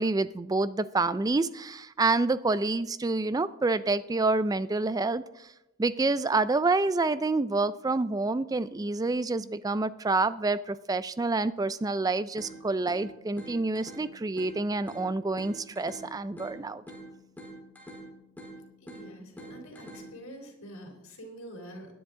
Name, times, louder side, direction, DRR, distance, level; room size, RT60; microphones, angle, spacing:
voice 1, 0.0-5.2 5.8-16.8, right 3 dB, 15° right, 15 dB, 0.3 m, -28 dB
sound 1, 12.4-20.4, right 1 dB, 10° left, 3.5 m, -47 dB
voice 2, 18.8-21.9, equal, 75° left, 1 dB, 3.5 m, -46 dB
19.0 x 10.0 x 3.6 m, 0.93 s
head